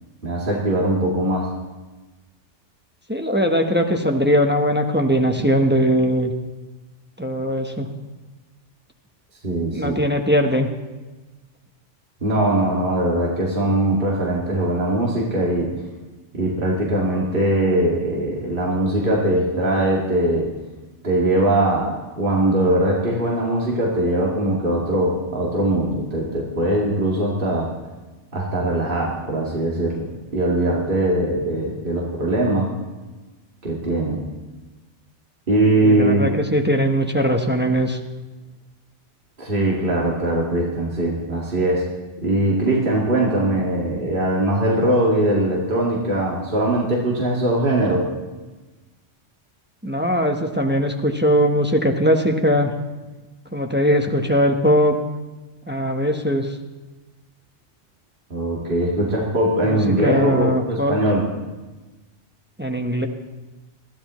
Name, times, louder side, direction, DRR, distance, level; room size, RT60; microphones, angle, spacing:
voice 1, 0.2-1.5 9.4-10.0 12.2-15.7 16.3-20.5 21.0-27.7 28.3-32.7 33.6-34.2 35.5-36.3 39.4-41.9 42.2-48.1 58.3-61.3, right 1 dB, 45° right, -4 dB, 2.4 m, -21 dB
voice 2, 3.1-6.3 7.2-7.9 9.7-10.7 35.8-38.0 49.8-52.7 53.5-55.0 55.7-56.6 59.6-61.0 62.6-63.1, equal, 10° right, 3 dB, 0.9 m, -20 dB
21.5 x 14.0 x 3.1 m, 1.2 s
omnidirectional pair, 1.3 m